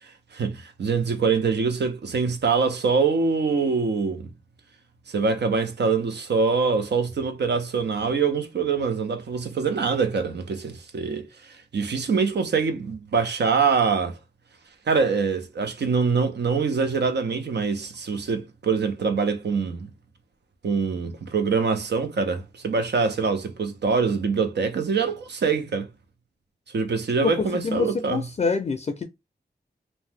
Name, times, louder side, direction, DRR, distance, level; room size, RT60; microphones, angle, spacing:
voice 1, 0.3-4.3 5.1-14.2 14.9-19.9 20.6-25.9 26.7-28.2, right 5 dB, 90° right, 0.5 m, -24 dB
voice 2, 27.2-29.0, left 4 dB, 40° left, 0.4 m, -26 dB
2.7 x 2.1 x 3.2 m
wide cardioid pair, 85°, 17 cm